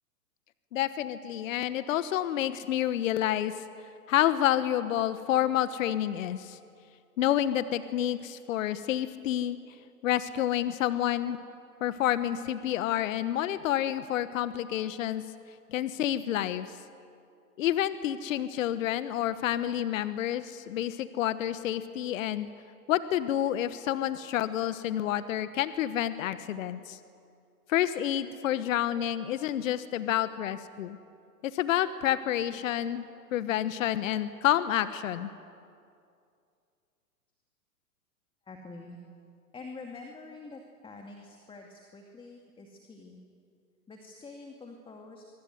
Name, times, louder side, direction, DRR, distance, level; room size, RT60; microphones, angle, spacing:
voice 1, 0.7-3.5 4.1-6.6 7.2-9.6 10.0-11.4 11.8-15.2 15.7-16.7 17.6-22.5 22.9-27.0 27.7-31.0 31.5-35.3, left 12 dB, 55° left, 12 dB, 1.3 m, -29 dB
voice 2, 38.5-39.0 39.5-43.3 43.9-45.2, left 3 dB, 10° left, 2 dB, 2.3 m, -46 dB
24.5 x 24.0 x 9.6 m, 2.4 s
hypercardioid pair, 120°, 47 cm